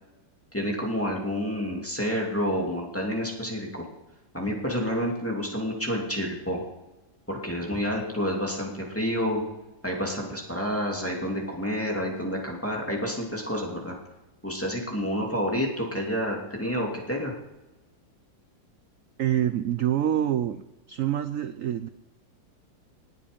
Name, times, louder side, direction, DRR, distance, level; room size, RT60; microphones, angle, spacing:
voice 1, 0.5-3.9 4.3-6.6 7.3-9.4 9.8-14.0 14.4-17.3, equal, 5° left, -2 dB, 2.5 m, -29 dB
voice 2, 19.2-20.6 20.9-21.9, right 11 dB, 80° right, 12 dB, 0.7 m, -26 dB
19.5 x 7.6 x 5.2 m, 1.0 s
omnidirectional pair, 2.0 m